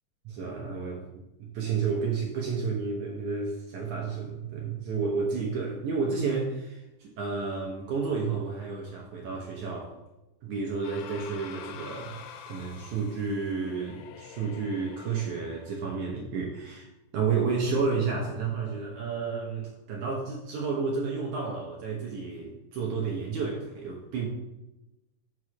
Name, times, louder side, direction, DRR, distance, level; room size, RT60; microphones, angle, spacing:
voice 1, 0.3-1.0 1.4-9.9 10.4-16.9 17.1-24.3, right 5 dB, 75° right, -1 dB, 1.8 m, -31 dB
sound 1, 10.8-15.9, left 8 dB, 90° left, 2.8 m, -46 dB
6.2 x 6.1 x 4.8 m, 0.95 s
omnidirectional pair, 4.6 m